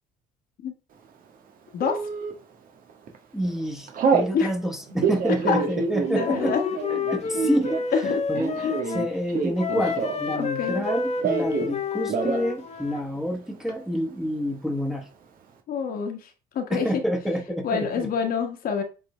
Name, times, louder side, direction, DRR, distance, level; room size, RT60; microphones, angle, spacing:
Telephone, 1.8-2.3 2.9-3.2 3.4-4.3 4.9-10.4 10.6-11.7 12.0-12.5 12.8-12.9 13.1-13.7, right 5 dB, 55° right, 1.5 m, -27 dB
voice 1, 3.3-6.6 6.9-15.1 16.7-18.1, equal, ahead, 1.3 m, -28 dB
voice 2, 6.1-6.6 7.3-7.5 7.9-8.2 8.6-8.8 10.3-10.9 15.7-16.3 16.5-16.9 17.6-18.8, left 6 dB, 60° left, 1.5 m, -26 dB
Wind instrument woodwind instrument, 6.1-9.1 9.6-13.1, left 5 dB, 40° left, 1.0 m, -30 dB
7.8 x 3.8 x 3.3 m
cardioid pair, 110°, 17 cm